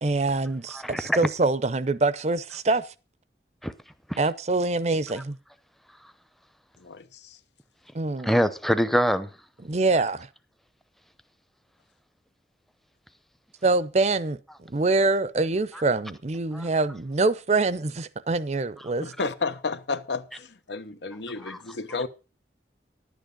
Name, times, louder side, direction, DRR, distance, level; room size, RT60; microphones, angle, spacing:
voice 1, 0.0-2.9 4.2-5.4 7.9-8.3 9.6-10.3 13.6-14.4 14.7-19.1, right 3 dB, 40° right, 0.6 m, -25 dB
voice 2, 0.7-1.2 3.6-3.7 4.1-4.2 8.2-9.3 16.5-16.6 21.5-21.6, equal, ahead, 0.7 m, -24 dB
voice 3, 6.8-7.4 19.0-22.1, left 4 dB, 80° left, 1.0 m, -32 dB
11.0 x 9.1 x 5.2 m
head